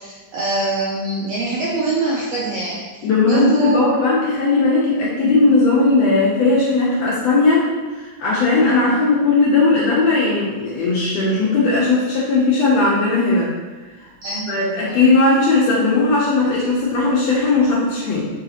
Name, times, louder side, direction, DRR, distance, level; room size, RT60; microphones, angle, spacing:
voice 1, 0.0-2.8 3.3-3.8 8.6-8.9 14.2-15.0, right 2 dB, 90° right, -5 dB, 1.5 m, -24 dB
voice 2, 3.0-13.5 14.5-18.3, left 3 dB, 75° left, -6 dB, 1.6 m, -17 dB
4.8 x 3.8 x 2.8 m, 1.3 s
omnidirectional pair, 3.7 m